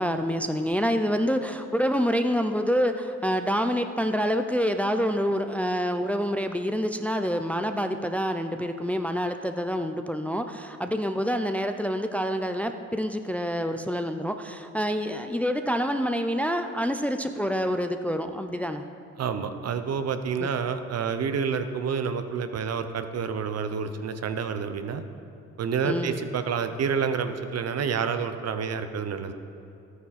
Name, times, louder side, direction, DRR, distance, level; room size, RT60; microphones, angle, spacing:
voice 1, 0.0-18.8 20.4-20.5 25.8-26.2, equal, 5° left, 7 dB, 0.5 m, -27 dB
voice 2, 19.2-25.0 25.6-29.3, right 6 dB, 55° right, 9 dB, 0.8 m, -28 dB
13.0 x 9.5 x 4.3 m, 2.9 s
cardioid pair, 90°, 30 cm